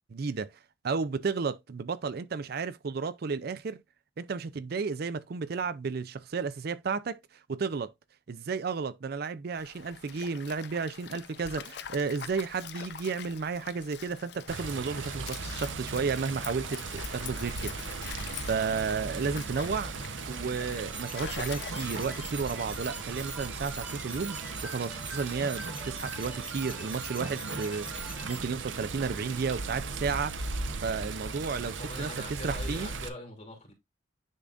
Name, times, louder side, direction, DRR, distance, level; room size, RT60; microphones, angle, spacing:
voice 1, 0.1-0.5 0.8-3.8 4.2-7.2 7.5-7.9 8.3-19.9 20.3-30.4 30.8-32.9, right 5 dB, 55° right, 0.4 m, -33 dB
Stream, 9.6-22.6, left 8 dB, 60° left, 0.6 m, -44 dB
Water, 14.5-33.1, right 4 dB, 80° right, 0.8 m, -38 dB
sound 1, 20.9-28.4, right 1 dB, 5° right, 1.7 m, -43 dB
voice 2, 31.8-33.7, left 2 dB, 35° left, 2.9 m, -42 dB
10.0 x 3.7 x 2.5 m
head